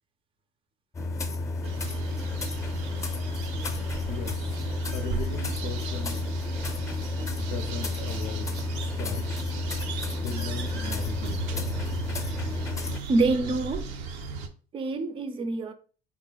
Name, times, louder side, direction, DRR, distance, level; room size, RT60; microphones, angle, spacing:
sound 1, 0.9-13.0, left 2 dB, 20° left, 0.5 m, -31 dB
sound 2, 1.6-14.5, right 5 dB, 85° right, 0.5 m, -37 dB
voice 1, 4.0-4.3 4.9-6.3 7.4-9.4 10.2-11.6, left 6 dB, 75° left, 0.5 m, -37 dB
voice 2, 13.1-13.9 14.7-15.7, right 3 dB, 30° right, 0.4 m, -26 dB
4.1 x 3.4 x 2.2 m
cardioid pair, 120°, 17 cm